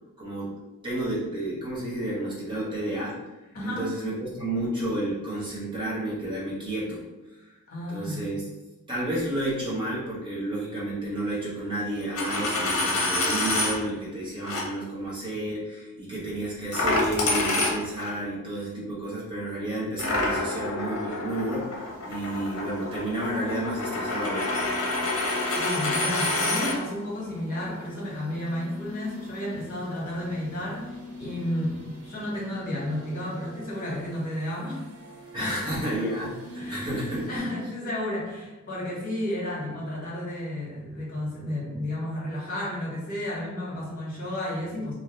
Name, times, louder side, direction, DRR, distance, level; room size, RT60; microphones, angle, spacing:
voice 1, 0.2-0.5 0.8-3.2 3.6-7.0 7.9-8.4 8.9-24.6 35.3-37.5, right 1 dB, 20° right, -8 dB, 1.1 m, -31 dB
voice 2, 3.5-3.9 7.7-8.2 25.6-30.8 31.2-34.8 35.4-35.8 36.6-44.9, left 1 dB, 40° left, -6 dB, 1.3 m, -32 dB
Coin (dropping), 12.0-13.8 14.4-14.6 16.7-18.1 20.0-26.8, left 2 dB, 60° left, 0.7 m, -27 dB
sound 1, 20.5-37.4, equal, 70° right, 0.7 m, -44 dB
2.8 x 2.7 x 3.1 m, 1.1 s
head